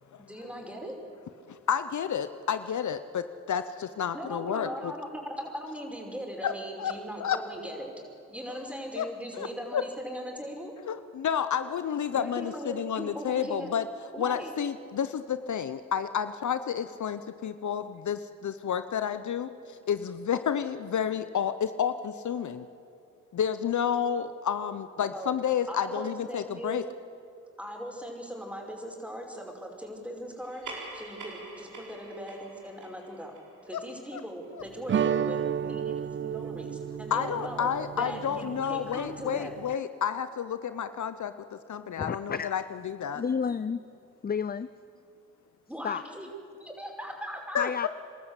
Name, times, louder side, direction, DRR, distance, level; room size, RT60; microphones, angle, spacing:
voice 1, 0.3-1.0 4.1-7.9 8.3-10.7 12.1-13.7 14.1-14.5 25.1-25.3 25.7-26.9 27.6-33.3 33.6-39.6 45.7-46.3 46.6-47.7, equal, 5° right, 1 dB, 5.6 m, -39 dB
voice 2, 1.5-4.9 6.4-6.5 6.8-6.9 7.2-7.4 8.5-8.6 9.0-9.1 9.3-9.8 10.9-13.8 14.2-22.7 23.3-26.8 33.7-33.8 34.1-34.2 34.5-34.6 37.1-43.2 47.5-47.9, left 8 dB, 65° left, 11 dB, 0.8 m, -30 dB
sound 1, 30.4-35.3, right 2 dB, 75° right, 4.7 m, -46 dB
sound 2, 34.9-39.7, right 8 dB, 40° right, 0.5 m, -32 dB
voice 3, 42.0-42.6 43.1-43.8 44.2-44.7 45.8-46.0 47.6-47.9, left 6 dB, 30° left, 15 dB, 0.5 m, -31 dB
26.5 x 13.0 x 8.2 m, 2.6 s
supercardioid pair, 50°, 32 cm